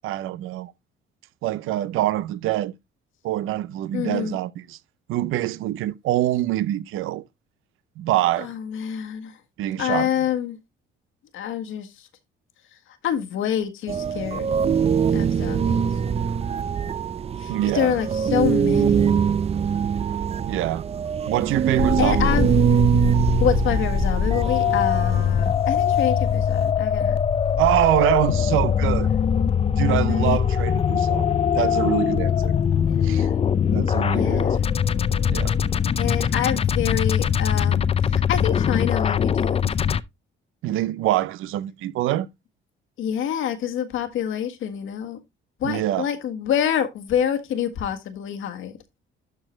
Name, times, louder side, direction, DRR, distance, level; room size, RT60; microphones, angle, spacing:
voice 1, 0.0-0.7 1.4-2.7 3.2-4.8 5.1-7.2 8.0-8.5 9.6-10.1 17.5-17.9 20.4-20.8 21.3-22.3 27.6-29.1 29.8-31.3 31.6-32.5 33.0-33.3 33.7-34.7 35.3-35.6 40.6-42.3 45.6-46.1, right 14 dB, 85° right, 0.6 m, -25 dB
voice 2, 3.9-4.4 8.4-9.3 9.8-10.6 11.3-11.9 13.0-14.5 15.1-15.9 17.4-19.2 22.0-22.5 23.4-27.2 30.1-30.4 32.9-33.4 34.1-34.7 36.0-39.6 43.0-45.2 45.6-48.7, left 9 dB, 75° left, 1.6 m, -27 dB
sound 1, 13.9-26.7, right 7 dB, 30° right, 0.4 m, -23 dB
sound 2, 21.8-40.0, left 7 dB, 30° left, 0.5 m, -22 dB
12.0 x 4.6 x 3.2 m
cardioid pair, 115°, 21 cm